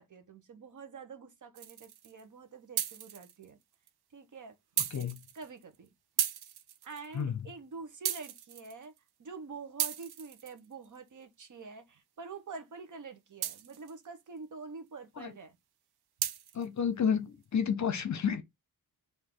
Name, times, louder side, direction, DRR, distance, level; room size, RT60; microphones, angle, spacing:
voice 1, 0.0-3.6 4.1-4.6 5.3-5.9 6.8-8.9 9.2-15.5, right 4 dB, 50° right, 1.0 m, -46 dB
sound 1, 1.6-2.2 2.8-3.5 3.9-4.0 4.8-5.8 6.2-7.2 8.1-9.0 9.8-11.0 13.4-14.1 16.2-16.7, right 10 dB, 80° right, 0.6 m, -35 dB
voice 2, 4.9-5.2 7.1-7.5 15.2-15.3 16.5-18.4, left 7 dB, 50° left, 0.8 m, -31 dB
4.8 x 2.8 x 3.7 m
wide cardioid pair, 130°, 38 cm